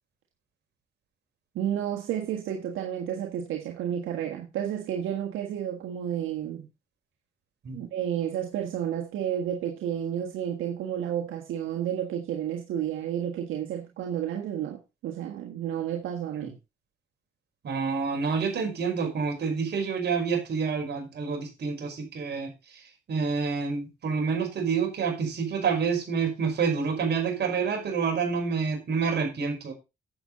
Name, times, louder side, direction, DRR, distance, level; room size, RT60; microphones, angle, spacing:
voice 1, 1.5-6.7 7.7-16.5, right 10 dB, 85° right, 1.5 m, -31 dB
voice 2, 17.6-22.8 23.1-29.7, right 5 dB, 60° right, 5.3 m, -28 dB
10.5 x 7.8 x 4.0 m
cardioid pair, 90°, 20 cm